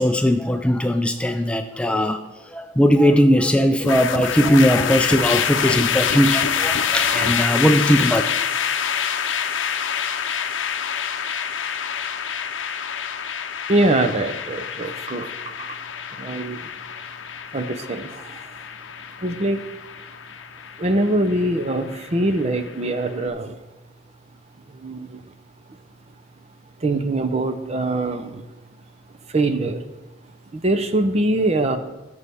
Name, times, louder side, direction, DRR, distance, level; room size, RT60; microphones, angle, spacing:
voice 1, 0.0-8.2, equal, 5° left, 6 dB, 0.4 m, -19 dB
sound 1, 3.8-23.1, left 7 dB, 75° left, 0.6 m, -26 dB
voice 2, 13.7-15.8 16.2-16.6 17.5-18.4 19.2-19.7 20.8-23.6 24.7-25.2 26.8-28.4 29.3-29.8 30.6-31.8, right 2 dB, 35° right, 8 dB, 0.7 m, -23 dB
15.0 x 6.9 x 3.5 m, 1.1 s
head